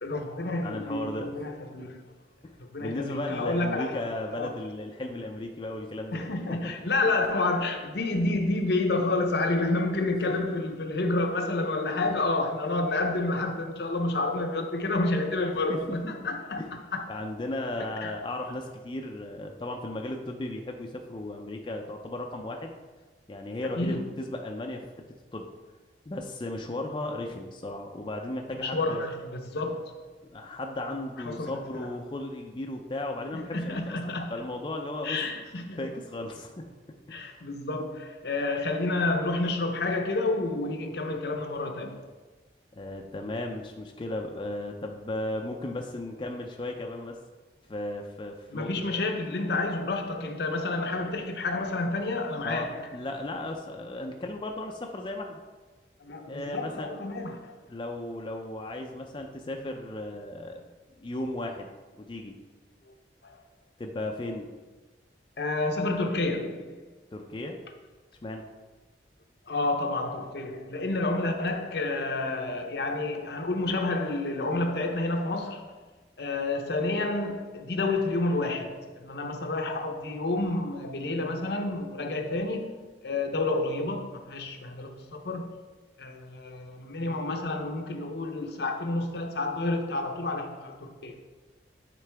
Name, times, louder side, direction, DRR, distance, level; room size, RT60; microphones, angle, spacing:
voice 1, 0.0-2.0 2.6-4.5 6.1-16.6 16.9-17.1 18.0-18.1 23.8-24.0 28.6-30.1 31.2-31.9 33.3-34.3 35.0-35.8 37.1-42.0 48.5-52.9 56.0-57.5 63.2-63.4 65.4-66.9 69.5-75.8 76.2-85.5 86.0-91.2, left 2 dB, 65° left, 0.7 m, -29 dB
voice 2, 0.6-1.3 2.4-6.7 15.7-15.8 16.6-16.7 17.1-22.7 23.3-24.9 25.3-25.5 26.1-29.0 30.2-34.0 34.3-35.2 35.8-36.6 37.1-37.4 42.7-47.2 47.7-48.7 52.4-55.4 56.3-56.9 57.7-60.7 61.0-61.7 61.9-62.3 63.8-64.5 67.1-67.6 68.2-68.5, left 1 dB, 25° left, 0.4 m, -35 dB
9.1 x 3.8 x 3.4 m
head